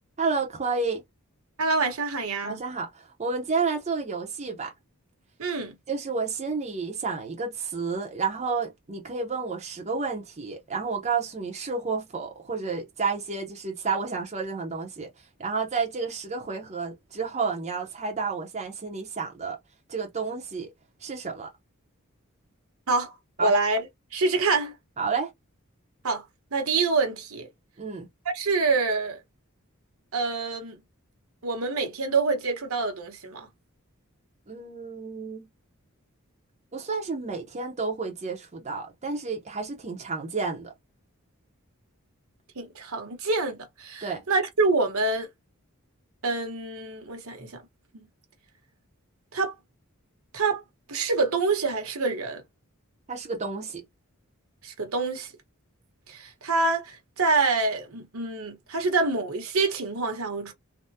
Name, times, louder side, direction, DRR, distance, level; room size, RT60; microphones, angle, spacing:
voice 1, 0.2-1.0 2.4-4.7 5.9-15.1 15.4-19.6 19.9-20.7 21.0-21.5 23.4-23.5 25.0-25.3 27.8-28.1 34.5-35.5 36.7-40.7 44.0-44.2 53.1-53.8, right 4 dB, 35° right, 0.7 m, -30 dB
voice 2, 1.6-2.6 5.4-5.8 22.9-23.1 23.4-23.9 24.1-24.7 26.0-26.2 26.5-27.5 28.2-29.2 30.1-30.8 31.4-33.5 42.6-45.3 46.2-47.6 47.9-48.1 49.3-49.6 50.3-50.6 50.9-52.4 54.6-55.3 56.1-60.5, right 3 dB, 70° right, 1.0 m, -26 dB
3.5 x 2.1 x 2.7 m
head